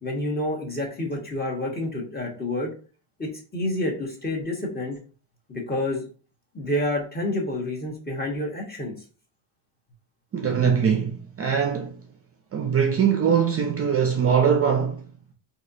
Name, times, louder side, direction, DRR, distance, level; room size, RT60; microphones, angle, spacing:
voice 1, 0.0-2.7 3.2-5.0 5.5-6.0 6.5-8.9, left 1 dB, 20° left, 1.1 m, -28 dB
voice 2, 10.3-11.9 12.5-15.0, right 7 dB, 35° right, 0.4 m, -22 dB
4.1 x 2.8 x 2.6 m
cardioid pair, 130°, 43 cm